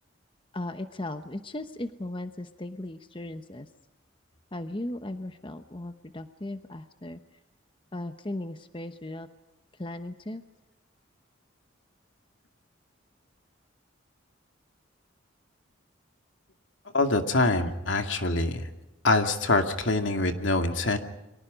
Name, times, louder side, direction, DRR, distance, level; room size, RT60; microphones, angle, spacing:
voice 1, 0.5-3.7 4.5-7.2 7.9-9.3 9.8-10.4, left 1 dB, 25° left, 8 dB, 0.9 m, -37 dB
voice 2, 16.9-18.6 19.0-21.0, left 2 dB, 75° left, 6 dB, 2.3 m, -24 dB
29.5 x 24.0 x 5.2 m, 0.99 s
head